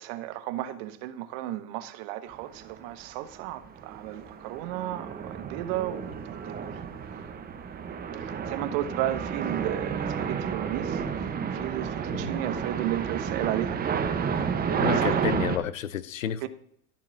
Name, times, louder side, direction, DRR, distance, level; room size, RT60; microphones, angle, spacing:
voice 1, 0.0-6.8 8.2-13.8 14.4-15.2 16.4-16.5, right 13 dB, 50° right, 1.1 m, -34 dB
sound 1, 2.6-2.8 3.2-15.6, right 7 dB, 25° right, 1.1 m, -31 dB
voice 2, 14.8-16.5, left 9 dB, 85° left, 0.7 m, -30 dB
13.0 x 7.3 x 4.0 m
hypercardioid pair, 100°, 38 cm